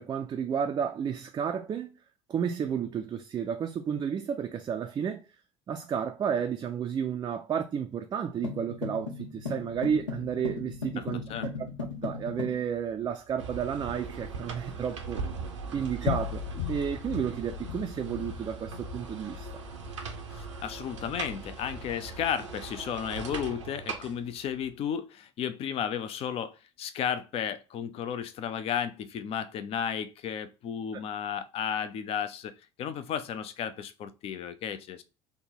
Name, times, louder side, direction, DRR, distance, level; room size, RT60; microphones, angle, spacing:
voice 1, 0.0-1.9 2.3-5.3 5.7-11.2 12.0-15.2 15.7-16.4 16.7-19.6, right 7 dB, 25° right, 0.4 m, -32 dB
sound 1, 8.4-12.6, left 4 dB, 85° left, 0.8 m, -37 dB
sound 2, 9.8-15.1 15.5-15.7 16.0-23.4, left 8 dB, 60° left, 0.8 m, -41 dB
voice 2, 11.0-11.5 20.3-32.5 32.8-35.0, left 8 dB, 40° left, 0.4 m, -33 dB
sound 3, 13.4-24.8, right 5 dB, 80° right, 0.6 m, -40 dB
3.4 x 2.1 x 4.1 m
figure-of-eight pair, 60°, 15 cm